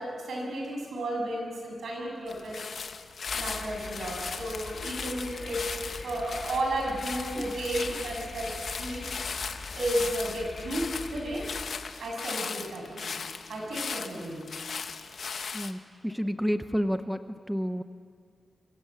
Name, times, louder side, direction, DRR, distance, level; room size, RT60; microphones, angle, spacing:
voice 1, 0.0-2.7 3.3-5.8 6.0-9.1 9.7-11.5 12.0-13.2 13.5-14.4, right 1 dB, 80° right, 0 dB, 7.5 m, -33 dB
sound 1, 2.3-15.7, left 5 dB, 55° left, 1.2 m, -38 dB
sound 2, 3.3-11.6, left 3 dB, 30° left, 2.2 m, -43 dB
voice 2, 15.5-17.8, equal, ahead, 9 dB, 0.7 m, -30 dB
25.5 x 24.0 x 7.7 m, 2.1 s
wide cardioid pair, 170°, 0 cm